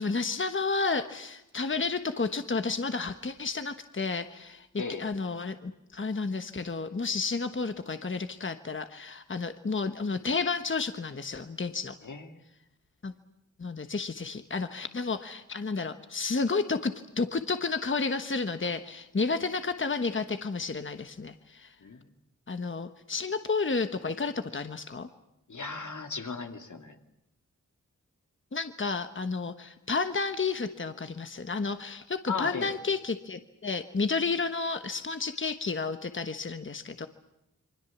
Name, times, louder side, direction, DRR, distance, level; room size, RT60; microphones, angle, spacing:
voice 1, 0.0-4.7 5.0-11.9 13.0-13.1 13.6-21.7 22.5-25.1 28.5-37.1, left 4 dB, 40° left, 8 dB, 1.3 m, -31 dB
voice 2, 12.0-12.4 21.8-22.0 25.5-27.0 32.3-32.7, left 5 dB, 80° left, 5 dB, 2.4 m, -36 dB
28.0 x 24.5 x 7.3 m, 0.84 s
wide cardioid pair, 85°, 29 cm